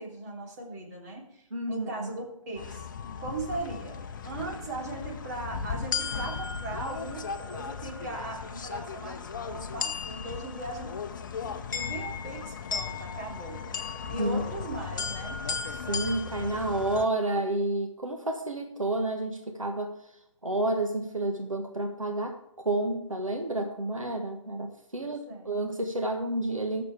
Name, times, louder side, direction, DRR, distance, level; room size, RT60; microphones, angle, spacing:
voice 1, 0.0-2.9 3.2-4.0 4.2-11.0 11.7-13.6 14.1-15.4 24.9-25.6, right 2 dB, 35° right, -1 dB, 2.9 m, -39 dB
voice 2, 1.5-2.1 14.2-14.4 15.9-19.9 20.4-26.8, right 1 dB, 80° right, 3 dB, 1.4 m, -30 dB
sound 1, 2.6-17.1, left 6 dB, 40° left, 0.7 m, -36 dB
20.0 x 6.9 x 3.4 m, 0.78 s
figure-of-eight pair, 140°, 17 cm